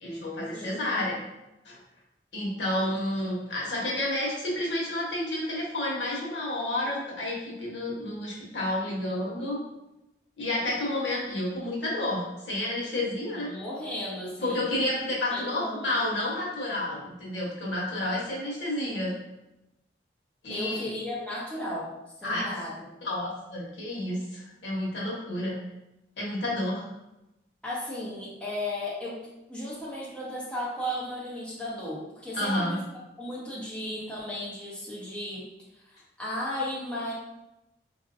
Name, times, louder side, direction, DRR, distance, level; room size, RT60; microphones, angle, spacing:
voice 1, 0.0-1.2 1.6-1.8 2.3-9.6 10.4-13.5 14.4-19.2 20.4-20.9 22.2-22.6 23.0-25.6 26.2-26.9 32.3-32.8, left 1 dB, 90° left, -4 dB, 1.1 m, -30 dB
voice 2, 13.3-14.6 15.3-15.9 20.5-21.9 22.2-23.0 27.6-29.2 29.5-32.8 33.2-35.4 36.2-37.1, left 1 dB, 5° left, -8 dB, 0.8 m, -35 dB
4.3 x 2.6 x 2.5 m, 0.94 s
head